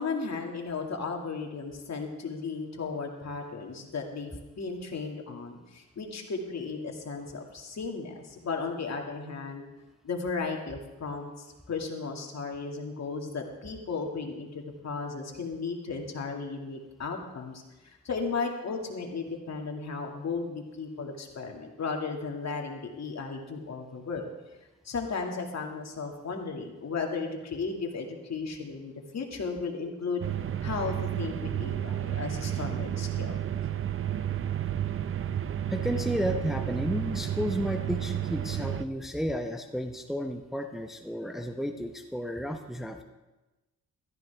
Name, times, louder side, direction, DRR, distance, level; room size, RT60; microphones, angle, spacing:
voice 1, 0.0-9.7 10.0-24.2 24.8-30.2 30.6-33.4, left 4 dB, 55° left, 2 dB, 2.2 m, -35 dB
sound 1, 30.2-38.8, right 10 dB, 40° right, 0.5 m, -31 dB
voice 2, 35.7-43.0, equal, ahead, 5 dB, 0.8 m, -32 dB
15.0 x 13.5 x 3.5 m, 1.1 s
cardioid pair, 85°, 32 cm